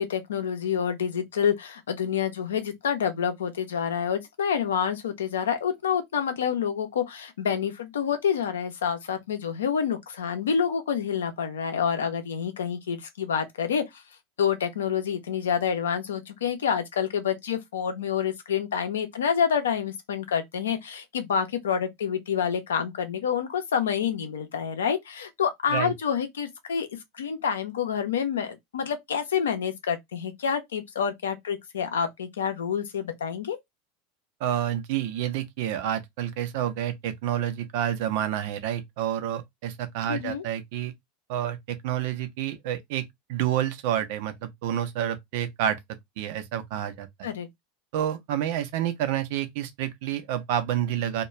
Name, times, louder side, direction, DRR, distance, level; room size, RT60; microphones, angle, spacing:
voice 1, 0.0-14.0 14.4-26.9 27.2-33.6 40.1-40.4 47.2-47.5, left 7 dB, 75° left, 0.6 m, -28 dB
voice 2, 34.4-40.9 41.3-45.8 46.2-47.3 47.9-51.2, right 11 dB, 60° right, 0.5 m, -29 dB
2.3 x 2.2 x 2.9 m
figure-of-eight pair, 80°, 0 cm